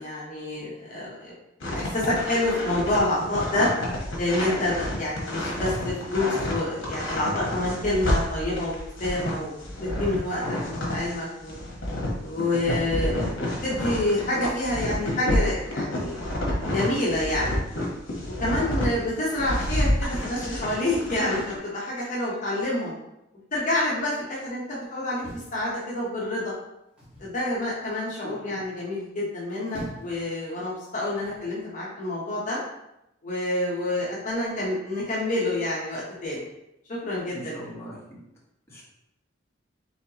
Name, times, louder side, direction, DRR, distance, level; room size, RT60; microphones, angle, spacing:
voice 1, 0.0-1.3 1.7-3.7 4.2-8.7 9.0-10.4 10.7-11.5 12.2-16.3 16.6-17.6 18.4-22.9 23.5-25.2 25.5-26.5 27.2-32.6 33.2-36.4 36.9-37.6, left 1 dB, 40° left, -6 dB, 0.9 m, -28 dB
sound 1, 1.6-11.1 11.5-18.9 19.3-21.6, left 1 dB, 70° left, 1.2 m, -29 dB
sound 2, 25.2-26.3 27.0-27.4 29.3-30.2 31.2-31.5, right 1 dB, 5° right, 1.4 m, -42 dB
voice 2, 28.2-28.6 37.3-38.2 38.7-38.8, equal, 15° left, -7 dB, 1.2 m, -41 dB
4.2 x 3.8 x 2.9 m, 0.86 s
head